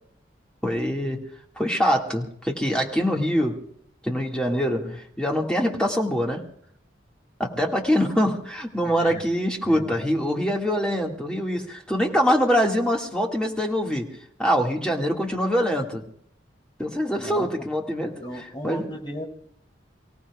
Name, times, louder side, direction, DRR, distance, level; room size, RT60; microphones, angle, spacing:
voice 1, 0.6-1.2 1.6-3.6 4.0-6.4 7.4-16.0 16.8-18.2 18.6-18.8, equal, 5° left, -1 dB, 2.0 m, -24 dB
voice 2, 8.8-9.2 9.6-10.1 17.2-17.5 18.2-19.2, left 1 dB, 25° left, 0 dB, 3.1 m, -36 dB
30.0 x 17.5 x 2.4 m, 0.67 s
head